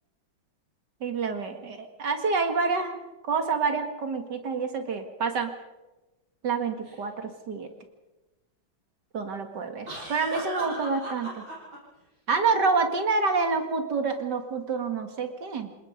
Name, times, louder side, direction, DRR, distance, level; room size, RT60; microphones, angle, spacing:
voice 1, 1.0-3.0 3.2-5.5 6.4-7.7 9.1-11.4 12.3-15.7, right 4 dB, 65° right, 6 dB, 2.6 m, -27 dB
sound 1, 6.8-7.0 9.9-11.8, right 1 dB, 85° right, 8.1 m, -37 dB
28.0 x 19.0 x 5.2 m, 1.1 s
omnidirectional pair, 2.0 m